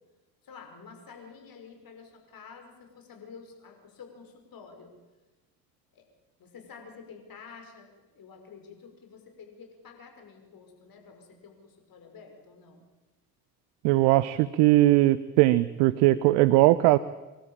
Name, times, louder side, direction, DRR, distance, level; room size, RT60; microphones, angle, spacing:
voice 1, 0.4-4.9 5.9-6.0 6.4-12.8, left 5 dB, 45° left, 4 dB, 5.8 m, -49 dB
voice 2, 13.8-17.0, right 17 dB, 65° right, 17 dB, 0.8 m, -20 dB
24.5 x 13.0 x 8.9 m, 1.1 s
hypercardioid pair, 60°, 47 cm